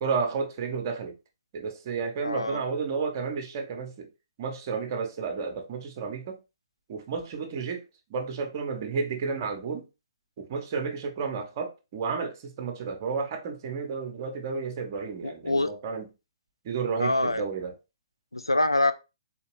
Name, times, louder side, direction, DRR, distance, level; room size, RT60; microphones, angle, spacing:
voice 1, 0.0-1.2 1.5-4.1 4.4-6.4 6.9-7.8 8.1-9.9 10.4-16.1 16.6-17.8, right 5 dB, 35° right, 0.8 m, -32 dB
voice 2, 2.2-2.6 15.2-15.7 17.0-17.4 18.3-18.9, left 2 dB, 85° left, 0.4 m, -25 dB
3.7 x 2.8 x 3.1 m
figure-of-eight pair, 125°, 2 cm